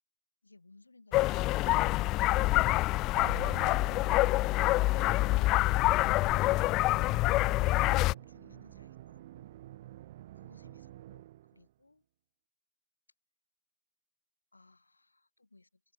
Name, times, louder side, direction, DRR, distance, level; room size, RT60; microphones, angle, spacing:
voice 1, 0.4-2.1 7.4-9.5 10.3-11.2 11.5-12.1 14.5-15.8, left 3 dB, 80° left, 7.7 m, -60 dB
sound 1, 1.1-8.1, left 19 dB, 40° left, 0.4 m, -26 dB
Musical instrument, 3.1-11.7, right 14 dB, 55° right, 2.9 m, -48 dB
figure-of-eight pair, 90°, 0 cm